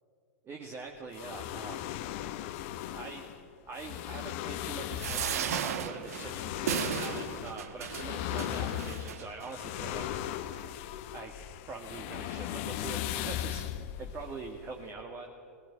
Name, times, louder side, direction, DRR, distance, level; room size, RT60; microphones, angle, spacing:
voice 1, 0.4-1.9 2.9-3.2 3.7-10.1 11.1-11.3 11.7-13.7 14.0-15.3, right 4 dB, 25° right, 1 dB, 1.8 m, -43 dB
sound 1, 1.1-15.0, left 12 dB, 50° left, 0.9 m, -38 dB
sound 2, 5.0-9.5 10.2-10.3 10.5-10.6, right 8 dB, 65° right, 1.4 m, -35 dB
19.0 x 17.0 x 8.9 m, 2.4 s
hypercardioid pair, 100°, 9 cm